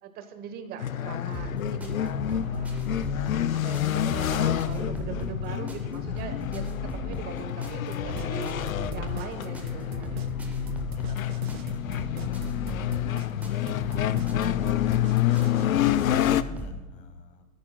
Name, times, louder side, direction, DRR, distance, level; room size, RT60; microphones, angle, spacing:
voice 1, 0.0-3.3 3.5-6.6 6.9-10.2, right 6 dB, 20° right, 8 dB, 1.1 m, -41 dB
sound 1, 0.8-16.4, left 11 dB, 70° left, 0.6 m, -28 dB
sound 2, 1.3-16.8, right 1 dB, 5° right, 0.7 m, -38 dB
sound 3, 7.7-15.7, right 9 dB, 45° right, 0.6 m, -43 dB
voice 2, 10.9-11.8 12.2-14.8 15.3-17.4, left 6 dB, 20° left, 8 dB, 1.1 m, -50 dB
20.5 x 13.5 x 2.2 m, 1.3 s
hypercardioid pair, 125°, 42 cm